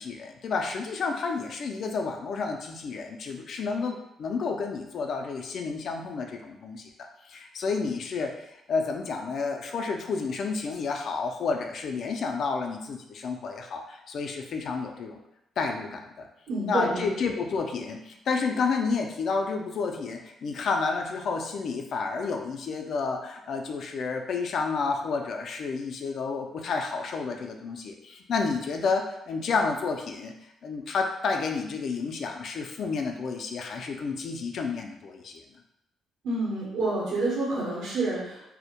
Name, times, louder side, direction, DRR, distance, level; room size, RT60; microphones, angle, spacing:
voice 1, 0.0-15.2 15.6-16.3 16.7-30.3 30.6-35.4, left 4 dB, 60° left, 3 dB, 0.3 m, -30 dB
voice 2, 16.5-17.0 36.2-38.4, right 2 dB, 75° right, -6 dB, 0.8 m, -28 dB
2.1 x 2.1 x 2.8 m, 0.85 s
cardioid pair, 90°, 0 cm